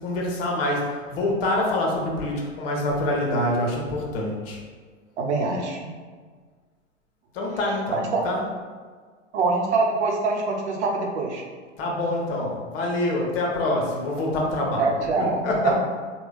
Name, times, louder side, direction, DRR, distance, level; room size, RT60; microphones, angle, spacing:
voice 1, 0.0-4.6 7.3-8.4 11.8-15.7, left 1 dB, 50° left, -1 dB, 1.0 m, -26 dB
voice 2, 5.2-5.9 7.9-8.2 9.3-11.4 14.8-15.4 15.6-15.7, right 3 dB, 65° right, 0 dB, 0.8 m, -24 dB
3.4 x 2.3 x 3.4 m, 1.5 s
hypercardioid pair, 110°, 37 cm